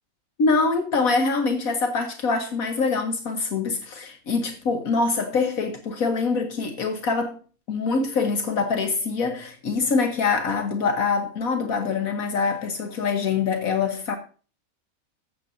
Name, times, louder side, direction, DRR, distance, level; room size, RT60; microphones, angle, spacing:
voice 1, 0.4-7.4 7.7-14.2, left 4 dB, 75° left, 1.6 m, -24 dB
15.5 x 7.0 x 2.6 m
omnidirectional pair, 1.5 m